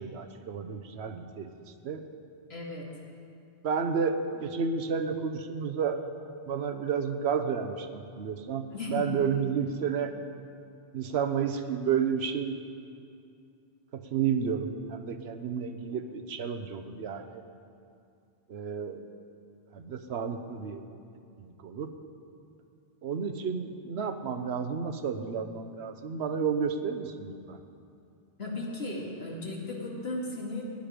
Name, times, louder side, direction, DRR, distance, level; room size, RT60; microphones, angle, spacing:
voice 1, 0.0-1.5 1.8-2.0 3.6-6.0 6.5-10.1 10.9-12.6 13.9-17.4 18.5-19.0 19.7-20.8 21.4-21.9 23.0-27.6, right 6 dB, 85° right, 8 dB, 1.1 m, -31 dB
voice 2, 2.5-2.9 8.7-9.2 28.4-30.6, left 2 dB, 75° left, -3 dB, 2.5 m, -35 dB
16.5 x 10.5 x 5.1 m, 2.5 s
omnidirectional pair, 1.1 m